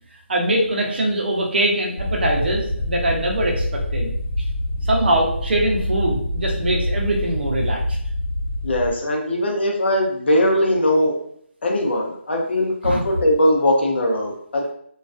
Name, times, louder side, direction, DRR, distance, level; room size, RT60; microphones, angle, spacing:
voice 1, 0.3-3.6 3.9-4.1 4.8-8.0 12.8-13.0, right 1 dB, 55° right, -1 dB, 0.6 m, -22 dB
sound 1, 2.0-8.9, left 1 dB, 40° left, 1.2 m, -26 dB
voice 2, 8.6-11.1 11.6-14.7, left 1 dB, 55° left, 0 dB, 0.6 m, -20 dB
2.3 x 2.3 x 2.3 m, 0.65 s
figure-of-eight pair, 165°, 7 cm